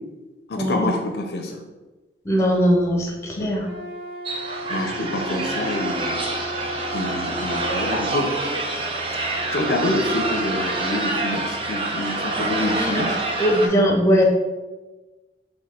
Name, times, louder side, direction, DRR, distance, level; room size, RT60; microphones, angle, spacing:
voice 1, 0.5-1.6 3.4-3.5 4.7-6.2 6.9-8.3 9.5-13.2, left 2 dB, 60° left, 4 dB, 0.4 m, -27 dB
voice 2, 2.3-3.1 3.4-3.6 12.5-13.1 13.4-14.2, equal, 15° left, 0 dB, 0.6 m, -20 dB
Wind instrument woodwind instrument, 3.6-8.2, left 1 dB, 55° right, 1.2 m, -35 dB
sound 1, 4.3-13.7, right 2 dB, 30° right, 0.4 m, -26 dB
4.1 x 2.6 x 4.2 m, 1.2 s
head